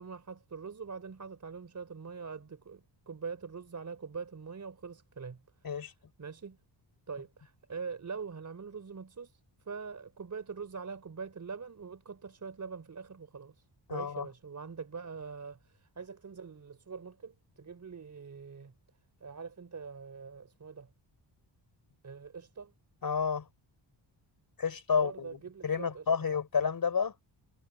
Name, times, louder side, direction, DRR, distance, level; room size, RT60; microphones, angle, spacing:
voice 1, 0.0-5.9 6.2-6.6 7.1-18.7 19.2-20.9 22.0-22.7 25.0-26.4, right 5 dB, 40° right, 3.9 m, -43 dB
voice 2, 13.9-14.3 23.0-23.5 24.6-27.1, left 6 dB, 50° left, 4.7 m, -30 dB
cardioid pair, 100°, 45 cm